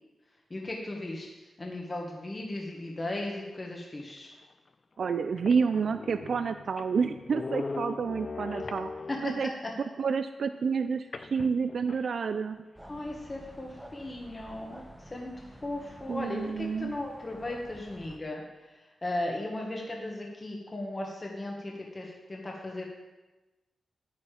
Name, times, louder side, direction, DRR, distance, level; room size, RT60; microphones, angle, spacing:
voice 1, 0.5-4.3 9.1-9.3 9.6-9.7 12.9-22.8, left 1 dB, 30° left, 0 dB, 1.6 m, -37 dB
sound 1, 4.4-4.5 5.1-5.2 5.4-9.4 11.1-12.2, left 4 dB, 45° left, 0.5 m, -40 dB
voice 2, 5.0-8.9 9.2-9.5 10.0-12.6 16.1-16.9, right 5 dB, 70° right, 10 dB, 0.4 m, -29 dB
sound 2, 12.7-18.2, equal, 5° right, 1.2 m, -50 dB
9.7 x 9.6 x 5.0 m, 1.1 s
cardioid pair, 85°, 0 cm